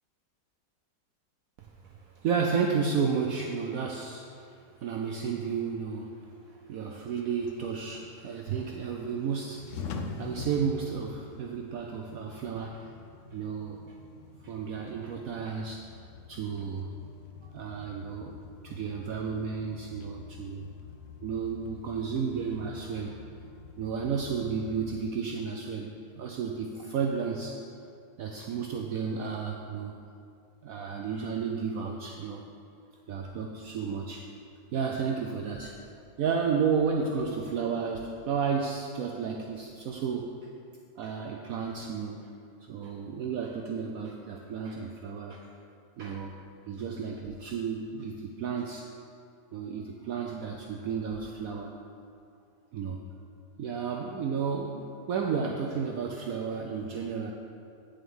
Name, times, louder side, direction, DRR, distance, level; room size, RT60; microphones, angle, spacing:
voice 1, 1.6-6.2 6.5-12.9 13.3-14.0 14.4-15.8 16.3-16.9 17.4-18.4 18.6-20.7 21.2-23.2 23.8-27.6 28.2-29.9 30.6-32.5 33.1-34.3 34.7-35.8 36.2-40.3 41.0-42.2 42.7-45.5 46.0-46.3 46.7-48.9 49.5-51.7 52.7-53.0 53.6-57.3, right 6 dB, 70° right, 1 dB, 0.8 m, -32 dB
sound 1, 7.1-25.0, left 5 dB, 80° left, 0.6 m, -46 dB
8.7 x 6.9 x 3.6 m, 2.4 s
omnidirectional pair, 1.9 m